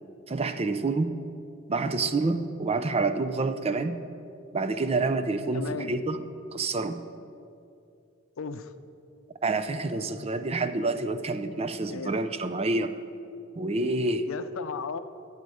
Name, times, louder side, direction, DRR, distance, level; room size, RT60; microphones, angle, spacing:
voice 1, 0.3-1.1 1.7-4.0 4.5-6.2 6.5-7.0 9.4-12.9 13.6-14.3, right 3 dB, 30° right, 10 dB, 0.5 m, -28 dB
voice 2, 5.5-5.9 8.4-8.7 11.9-12.2 14.3-15.0, left 5 dB, 90° left, 11 dB, 0.5 m, -35 dB
13.5 x 8.1 x 4.8 m, 2.6 s
head